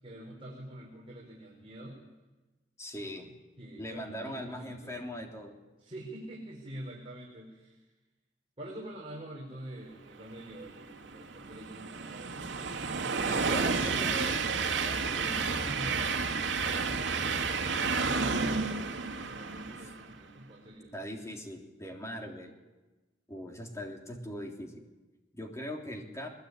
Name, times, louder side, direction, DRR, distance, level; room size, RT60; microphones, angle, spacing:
voice 1, 0.0-2.1 3.6-4.9 5.8-7.9 8.6-13.6 15.2-20.9, right 1 dB, 30° right, -3 dB, 5.0 m, -46 dB
voice 2, 2.8-3.3 3.8-5.5 13.3-15.6 19.7-19.9 20.9-22.6 23.3-24.8 25.3-26.3, equal, 15° left, 2 dB, 3.5 m, -41 dB
Train, 10.7-20.2, right 4 dB, 75° right, 2.2 m, -31 dB
21.5 x 21.5 x 9.8 m, 1.1 s
head